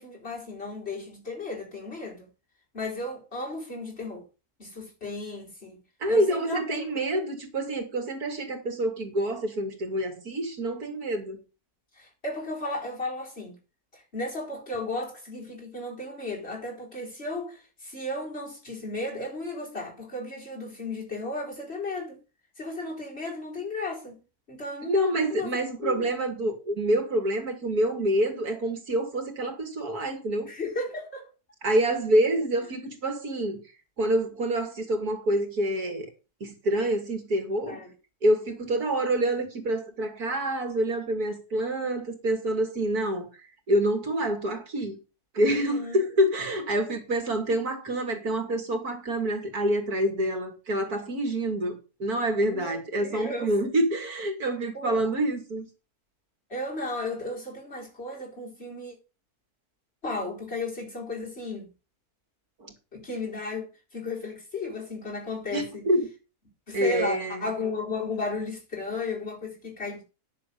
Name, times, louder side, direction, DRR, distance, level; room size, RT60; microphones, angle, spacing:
voice 1, 0.0-2.3 2.7-4.3 4.6-5.8 6.1-6.9 11.9-13.6 13.9-22.2 22.6-24.2 24.5-25.0 25.3-25.5 25.8-26.1 30.5-31.3 37.7-37.9 45.5-46.0 52.5-53.6 54.7-55.0 56.5-59.0 60.0-61.7 62.9-65.9 66.7-70.0, left 2 dB, 40° left, 4.6 m, -34 dB
voice 2, 6.0-11.4 24.8-30.5 31.6-33.6 34.0-36.1 36.4-37.8 38.2-43.3 43.7-45.0 45.3-55.7 62.6-62.7 65.5-66.0 66.7-67.4, right 1 dB, 75° right, 3.0 m, -27 dB
10.0 x 6.8 x 6.9 m
omnidirectional pair, 1.6 m